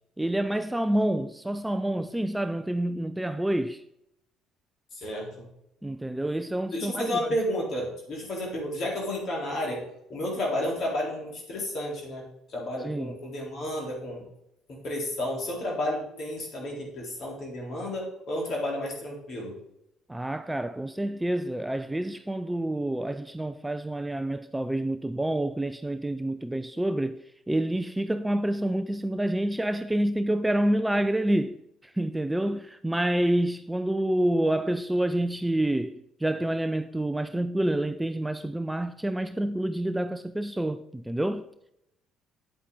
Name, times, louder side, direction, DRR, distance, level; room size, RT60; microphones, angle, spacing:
voice 1, 0.2-3.8 5.8-7.1 12.8-13.2 20.1-27.2 27.5-41.4, right 1 dB, 10° right, 0.5 m, -28 dB
voice 2, 4.9-5.4 6.7-9.8 10.1-12.2 12.5-14.2 14.7-19.5, left 1 dB, 50° left, 4.0 m, -31 dB
9.0 x 8.4 x 4.0 m
figure-of-eight pair, 50°, 0 cm